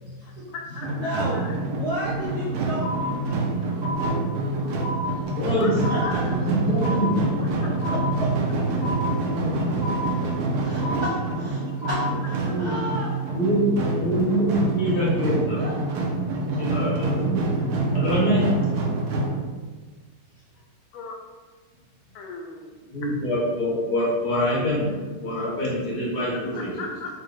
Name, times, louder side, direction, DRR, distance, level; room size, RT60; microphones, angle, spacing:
voice 1, 0.2-1.5 5.6-6.4 7.4-7.5 20.9-21.2 22.1-22.8 26.3-27.1, left 3 dB, 80° left, 1 dB, 1.5 m, -38 dB
sound 1, 0.8-19.3, right 3 dB, 90° right, 1.5 m, -26 dB
voice 2, 0.9-1.4 1.7-3.1 3.7-3.9 4.4-4.7 5.9-6.3 8.2-8.3 10.6-13.1 15.5-15.8 18.1-18.5 26.5-26.9, right 1 dB, 70° right, -8 dB, 0.9 m, -33 dB
sound 2, 2.8-3.5 3.8-4.6 4.8-5.6 5.8-6.6 6.8-7.6 7.8-8.6 8.8-9.6 9.8-10.6 10.8-11.6 11.8-12.6, equal, 30° right, 1.0 m, -34 dB
voice 3, 5.4-5.7 6.4-7.2 9.2-9.8 12.4-12.7 13.3-13.7 14.0-15.6 16.6-17.4 17.9-18.4 22.9-24.9 25.2-26.7, equal, 60° left, -6 dB, 1.2 m, -25 dB
3.7 x 3.3 x 2.5 m, 1.4 s
omnidirectional pair, 2.4 m